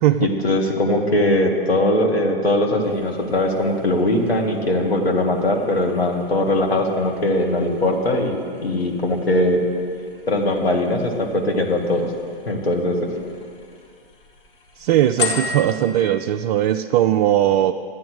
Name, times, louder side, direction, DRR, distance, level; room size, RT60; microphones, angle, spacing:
voice 1, 0.2-8.4 8.6-9.7 10.3-12.1 12.5-13.1, left 1 dB, 90° left, 1 dB, 2.0 m, -20 dB
sound 1, 2.8-15.8, left 4 dB, 60° left, 2.4 m, -37 dB
voice 2, 14.8-17.7, right 12 dB, 45° right, 5 dB, 0.4 m, -19 dB
12.5 x 9.5 x 6.3 m, 2.2 s
hypercardioid pair, 115°, 30 cm